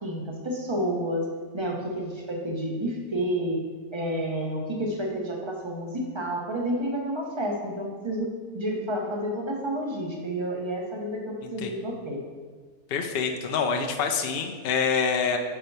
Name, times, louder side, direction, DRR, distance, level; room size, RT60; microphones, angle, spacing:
voice 1, 0.0-1.3 1.5-3.6 3.9-12.2, equal, 30° right, 0 dB, 0.6 m, -30 dB
voice 2, 12.9-15.4, left 5 dB, 70° left, 3 dB, 0.5 m, -26 dB
4.7 x 4.4 x 5.4 m, 1.5 s
omnidirectional pair, 1.6 m